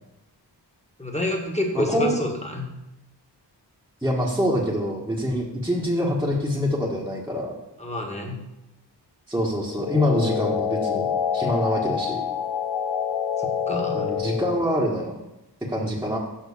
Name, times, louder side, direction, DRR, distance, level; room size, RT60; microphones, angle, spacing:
voice 1, 1.0-2.7 7.8-8.4 13.4-14.1, left 1 dB, 15° left, 1 dB, 1.9 m, -28 dB
voice 2, 1.7-2.1 4.0-7.5 9.3-11.1 11.3-12.2 13.9-15.2 15.7-16.2, equal, 5° right, -6 dB, 1.6 m, -25 dB
sound 1, 9.7-14.7, left 8 dB, 75° left, 0.7 m, -27 dB
7.3 x 5.6 x 7.2 m, 0.93 s
wide cardioid pair, 65°, 43 cm